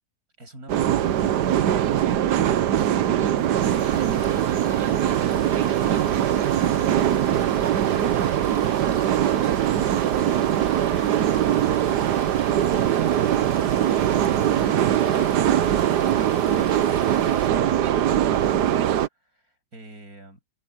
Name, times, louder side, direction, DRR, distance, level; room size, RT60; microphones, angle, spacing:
sound 1, 0.7-19.1, right 10 dB, 80° right, 1.5 m, -21 dB
sound 2, 3.6-17.5, left 2 dB, 45° left, 4.7 m, -45 dB
voice 1, 19.2-20.4, right 1 dB, 60° right, 8.0 m, -46 dB
omnidirectional pair, 1.8 m